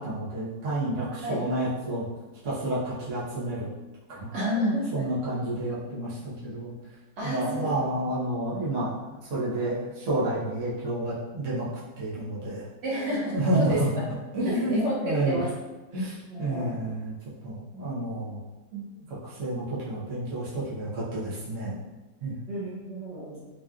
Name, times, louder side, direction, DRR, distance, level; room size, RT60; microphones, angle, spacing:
voice 1, 0.0-2.1 2.4-3.7 4.1-6.7 7.2-11.7 12.0-12.6 13.3-13.9 14.3-15.4 15.9-17.1 17.4-18.4 18.7-21.8 22.2-22.4, right 1 dB, 50° right, -9 dB, 1.3 m, -30 dB
voice 2, 4.3-5.0 7.2-7.8 12.8-13.8 14.4-15.5 16.3-16.9 22.5-23.5, equal, 75° right, -7 dB, 1.7 m, -32 dB
3.8 x 3.0 x 2.4 m, 1.1 s
omnidirectional pair, 1.9 m